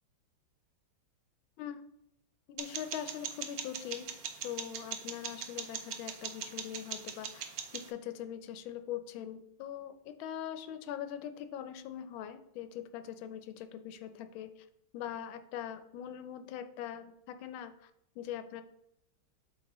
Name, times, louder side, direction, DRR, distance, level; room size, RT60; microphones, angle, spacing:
voice 1, 2.5-4.1 4.4-14.7 14.9-17.9 18.2-18.6, left 10 dB, 80° left, 9 dB, 1.4 m, -42 dB
sound 1, 2.6-7.9, right 8 dB, 75° right, 0.8 m, -41 dB
7.9 x 4.2 x 3.0 m, 0.77 s
omnidirectional pair, 2.2 m